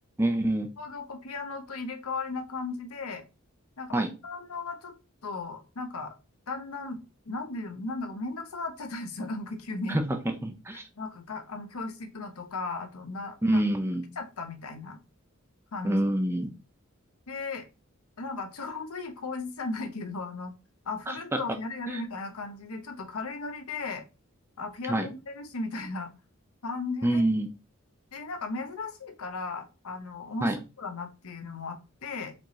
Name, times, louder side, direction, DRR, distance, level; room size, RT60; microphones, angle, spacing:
voice 1, 0.2-0.7 3.9-4.1 9.9-10.8 13.4-14.1 15.8-16.5 21.1-21.2 21.9-22.0 24.9-25.1 27.0-27.5 30.4-30.6, right 1 dB, 10° right, 5 dB, 0.5 m, -26 dB
voice 2, 0.8-3.2 3.8-4.0 4.2-4.9 5.2-6.1 6.5-10.0 11.0-13.6 14.2-15.0 15.7-16.0 17.3-17.6 18.2-20.5 20.8-24.0 24.6-26.1 26.6-27.2 28.1-30.5 30.8-32.3, left 3 dB, 85° left, 5 dB, 0.9 m, -36 dB
4.4 x 2.8 x 3.1 m, 0.29 s
head